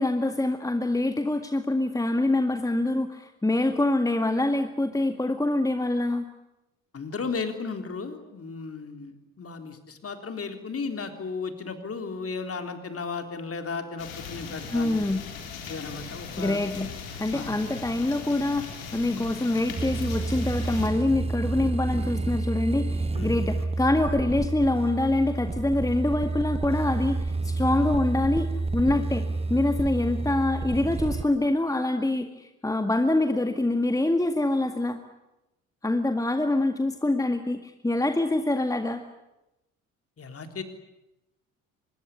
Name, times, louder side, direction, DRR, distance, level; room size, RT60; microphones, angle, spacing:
voice 1, 0.0-6.2 14.7-15.2 16.4-16.9 17.2-35.0 35.8-39.0, left 2 dB, 10° left, 7 dB, 1.9 m, -25 dB
voice 2, 6.9-15.1 15.7-16.6 17.3-17.5 19.1-19.2 23.1-23.3 28.9-29.0 40.2-40.6, left 4 dB, 35° left, 7 dB, 3.8 m, -35 dB
sound 1, 14.0-20.9, left 5 dB, 80° left, 3.6 m, -39 dB
sound 2, 19.7-31.3, right 3 dB, 15° right, 0.9 m, -29 dB
25.0 x 21.0 x 10.0 m, 0.93 s
figure-of-eight pair, 50°, 41 cm